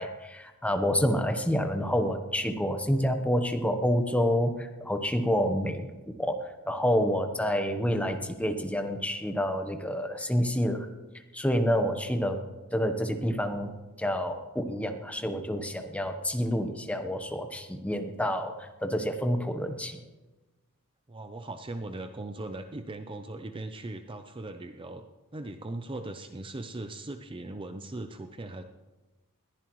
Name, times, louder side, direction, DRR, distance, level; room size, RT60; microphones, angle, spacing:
voice 1, 0.0-5.9 6.2-10.9 11.3-12.4 12.7-13.7 14.0-20.0, equal, 5° left, 6 dB, 1.0 m, -28 dB
voice 2, 21.1-25.0 25.3-28.6, right 2 dB, 25° right, 7 dB, 0.6 m, -39 dB
21.0 x 14.5 x 3.1 m, 1.2 s
head